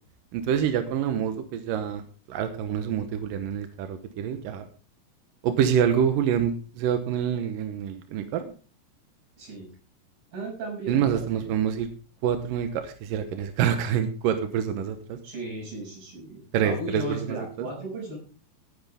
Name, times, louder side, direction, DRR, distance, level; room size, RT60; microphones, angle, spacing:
voice 1, 0.3-2.0 2.3-4.7 5.4-8.5 10.9-11.9 12.2-15.2 16.5-17.7, right 8 dB, 70° right, 8 dB, 2.3 m, -26 dB
voice 2, 9.4-9.7 10.3-11.5 15.2-18.2, right 2 dB, 55° right, -1 dB, 8.3 m, -36 dB
17.5 x 9.6 x 3.6 m, 0.36 s
omnidirectional pair, 4.9 m